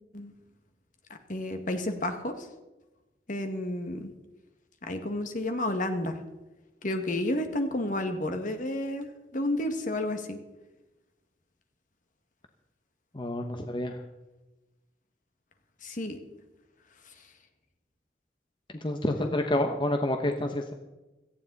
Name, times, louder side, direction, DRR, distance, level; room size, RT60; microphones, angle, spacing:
voice 1, 1.3-2.5 3.3-4.1 4.8-6.2 6.8-10.4 15.8-16.2, left 1 dB, 45° left, 6 dB, 1.8 m, -31 dB
voice 2, 13.1-14.0 18.7-20.7, left 1 dB, 30° left, 5 dB, 1.0 m, -29 dB
17.5 x 14.5 x 4.1 m, 1.1 s
head